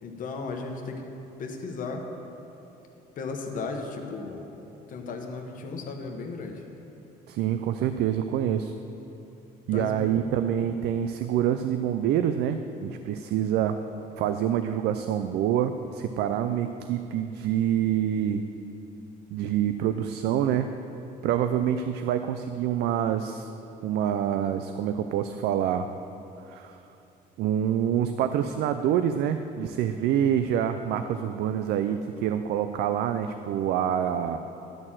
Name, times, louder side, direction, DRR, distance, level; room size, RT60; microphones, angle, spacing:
voice 1, 0.0-1.0 1.4-2.0 3.2-4.5 4.9-6.6 9.7-10.4, left 4 dB, 50° left, 2 dB, 1.0 m, -35 dB
voice 2, 7.3-8.7 9.7-13.8 14.2-18.4 19.3-20.7 21.2-23.5 23.8-25.9 26.5-26.8 27.4-34.4, right 9 dB, 75° right, 9 dB, 0.4 m, -26 dB
11.0 x 4.3 x 7.4 m, 3.0 s
cardioid pair, 110°, 17 cm